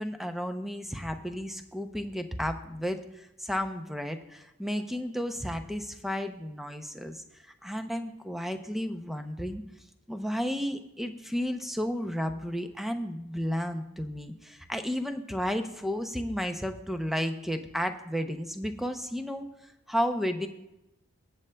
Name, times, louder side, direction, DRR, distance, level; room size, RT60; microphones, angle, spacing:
voice 1, 0.0-7.2 7.6-9.6 10.1-19.5 19.9-20.5, equal, ahead, 6 dB, 0.6 m, -32 dB
20.5 x 7.4 x 2.2 m, 0.92 s
head